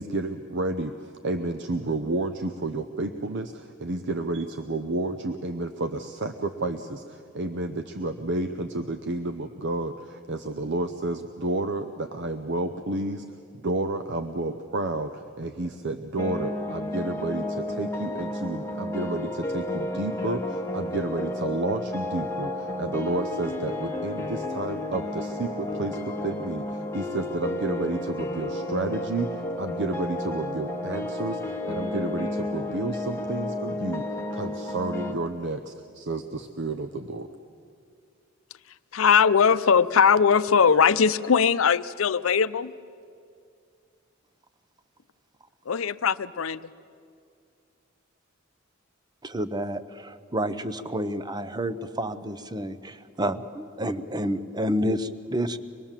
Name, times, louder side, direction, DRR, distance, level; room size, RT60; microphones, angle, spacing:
voice 1, 0.0-13.2 13.5-34.1 34.3-37.3, right 2 dB, 60° right, 8 dB, 0.8 m, -31 dB
sound 1, 16.2-35.1, left 1 dB, 15° left, 1.3 m, -32 dB
voice 2, 38.9-42.7 45.7-46.6, left 6 dB, 85° left, 14 dB, 0.6 m, -20 dB
voice 3, 49.2-55.6, equal, 20° right, 12 dB, 0.8 m, -29 dB
24.5 x 20.5 x 7.4 m, 2.3 s
head